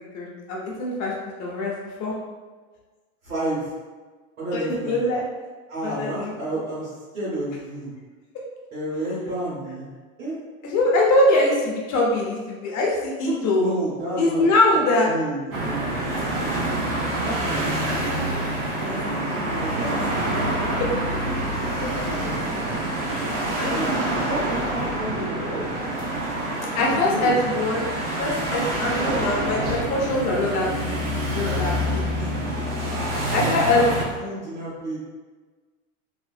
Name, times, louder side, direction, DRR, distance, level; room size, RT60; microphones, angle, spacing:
voice 1, 0.1-1.1 1.4-1.7 2.0-2.1 4.5-5.2 5.8-6.3 10.6-13.8 14.2-15.1 20.8-20.9 21.7-22.6 23.6-23.8 26.7-32.3 33.3-33.8, left 2 dB, 40° left, -3 dB, 0.8 m, -23 dB
voice 2, 3.2-3.7 4.4-5.0 5.7-7.9 8.7-9.9 10.2-10.4 13.2-16.8 17.2-18.3 18.8-20.1 23.1-25.7 26.9-27.4 31.9-33.9 34.1-35.0, right 1 dB, 75° right, -11 dB, 1.5 m, -31 dB
sound 1, 15.5-34.0, right 1 dB, 30° right, 0.8 m, -26 dB
2.8 x 2.4 x 2.5 m, 1.4 s
hypercardioid pair, 105°, 44 cm